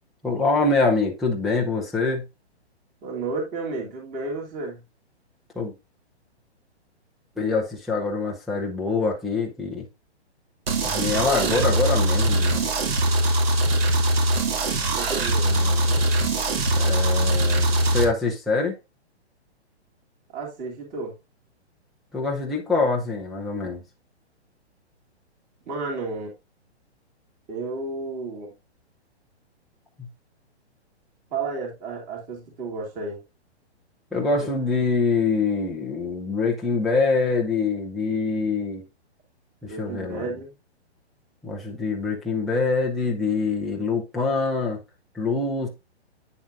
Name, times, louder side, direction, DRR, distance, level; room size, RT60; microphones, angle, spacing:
voice 1, 0.2-2.2 5.6-5.7 7.4-9.9 10.8-12.7 15.4-16.0 16.7-18.8 22.1-23.8 30.0-30.1 34.1-38.8 39.6-40.3 41.4-44.8 45.1-45.7, left 4 dB, ahead, 0.4 m, -25 dB
voice 2, 3.0-4.8 11.1-11.6 14.9-15.6 20.3-21.1 25.7-26.3 27.5-28.5 31.3-33.2 34.4-34.5 39.7-40.5, right 3 dB, 25° right, 2.7 m, -32 dB
sound 1, 10.7-18.0, right 1 dB, 60° right, 2.3 m, -22 dB
8.8 x 7.1 x 2.5 m
hypercardioid pair, 145°, 34 cm